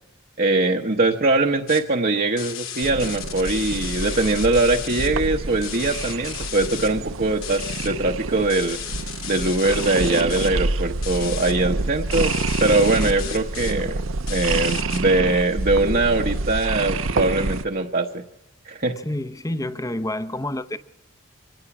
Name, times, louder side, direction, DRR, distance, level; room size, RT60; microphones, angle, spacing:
voice 1, 0.4-8.8 9.3-12.3 12.6-14.0 14.3-18.2 18.7-19.0, right 2 dB, 45° right, 1.0 m, -22 dB
sound 1, 1.7-1.8 2.4-5.1 5.6-6.9 7.4-7.9 8.5-10.5 11.0-11.5 12.1-13.7 14.3-15.0, left 10 dB, 80° left, 2.7 m, -34 dB
sound 2, 2.8-17.6, right 3 dB, 75° right, 0.8 m, -28 dB
voice 2, 19.0-20.8, left 1 dB, 15° left, 0.7 m, -28 dB
25.0 x 18.5 x 6.0 m
head